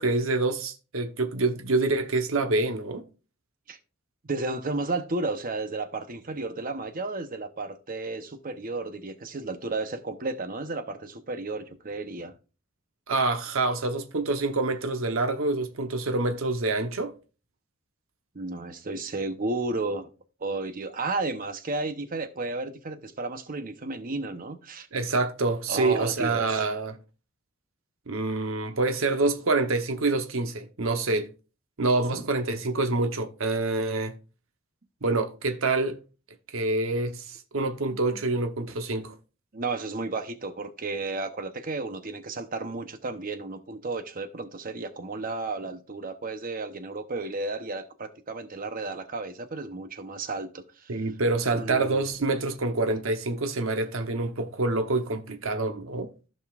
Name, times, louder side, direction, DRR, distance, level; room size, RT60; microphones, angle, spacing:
voice 1, 0.0-3.0 13.1-17.1 24.9-27.0 28.1-31.3 31.8-34.2 35.0-36.0 36.5-39.2 50.9-56.1, right 3 dB, 75° right, 1.0 m, -26 dB
voice 2, 4.2-12.3 18.3-20.1 20.4-24.9 25.7-26.8 32.1-32.2 39.5-51.0 51.5-52.1, right 3 dB, 45° right, 0.9 m, -33 dB
15.0 x 5.3 x 2.5 m
head